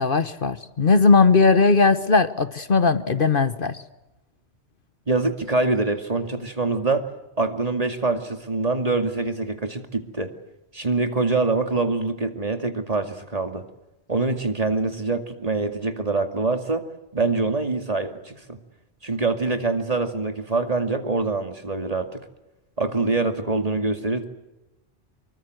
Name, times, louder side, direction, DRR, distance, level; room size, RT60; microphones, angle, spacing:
voice 1, 0.0-3.8, left 4 dB, 50° left, 13 dB, 1.2 m, -18 dB
voice 2, 5.1-7.1 7.4-10.3 10.7-13.6 14.1-16.8 17.1-18.6 19.0-22.2 22.8-24.2, right 3 dB, 35° right, 7 dB, 2.4 m, -24 dB
26.0 x 23.0 x 7.9 m, 0.98 s
omnidirectional pair, 1.1 m